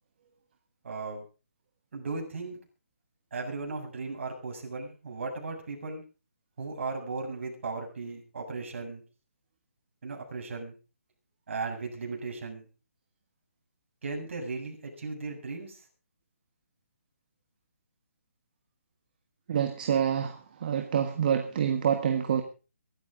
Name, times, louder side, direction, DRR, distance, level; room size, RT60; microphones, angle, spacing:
voice 1, 0.8-1.2 1.9-2.6 3.3-6.0 6.6-9.0 10.0-10.7 11.5-12.7 14.0-15.8, right 3 dB, 55° right, 1 dB, 7.7 m, -36 dB
voice 2, 19.5-22.4, right 8 dB, 35° right, 6 dB, 1.6 m, -27 dB
23.0 x 13.0 x 3.9 m, 0.34 s
hypercardioid pair, 165°, 8 cm